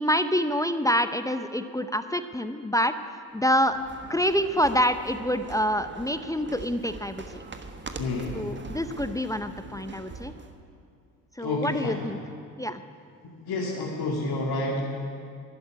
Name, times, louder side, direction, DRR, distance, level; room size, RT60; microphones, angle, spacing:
voice 1, 0.0-2.9 3.3-3.8 4.1-7.4 8.3-10.3 11.4-12.2 12.6-12.8, equal, 5° left, 10 dB, 0.6 m, -26 dB
sound 1, 3.4-10.6, right 3 dB, 25° right, 1.4 m, -42 dB
voice 2, 8.0-8.7 11.4-12.1 13.2-14.8, left 2 dB, 50° left, -3 dB, 2.4 m, -30 dB
11.5 x 11.5 x 9.7 m, 2.3 s
hypercardioid pair, 50°, 48 cm